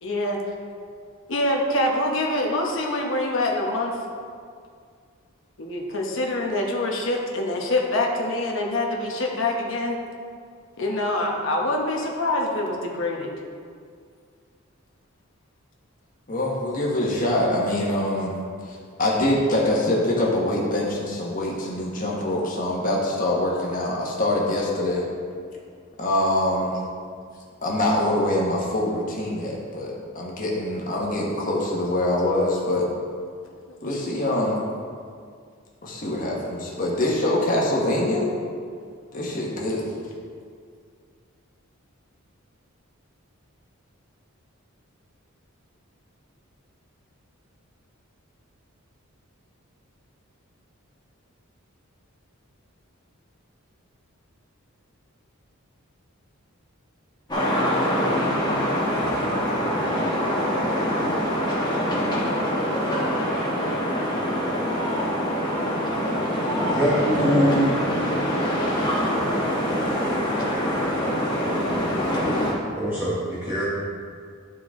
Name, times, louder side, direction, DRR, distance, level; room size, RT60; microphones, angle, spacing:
voice 1, 0.0-0.4 1.3-3.9 5.6-10.0 10.8-13.3, left 1 dB, 60° left, 0 dB, 1.1 m, -25 dB
voice 2, 16.3-18.4 18.7-25.1 26.0-26.8 27.6-32.9 33.8-34.6 35.8-38.2 39.1-39.9, left 1 dB, 40° left, -3 dB, 1.4 m, -24 dB
sound 1, 57.3-72.5, equal, 20° left, 1.5 m, -24 dB
voice 3, 66.5-67.8 72.8-73.6, equal, 10° right, -8 dB, 1.1 m, -23 dB
11.5 x 4.5 x 3.7 m, 2.1 s
head